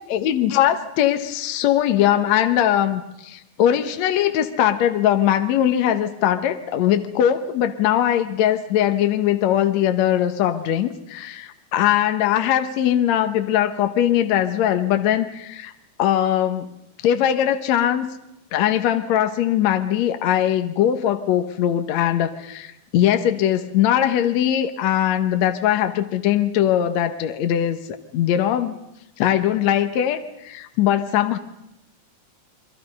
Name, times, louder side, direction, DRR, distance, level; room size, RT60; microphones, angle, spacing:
voice 1, 0.1-15.7 16.0-16.7 17.0-18.1 18.5-27.8 28.1-28.8 29.2-31.4, left 11 dB, 70° left, 8 dB, 1.8 m, -20 dB
29.0 x 23.0 x 5.4 m, 0.86 s
omnidirectional pair, 4.5 m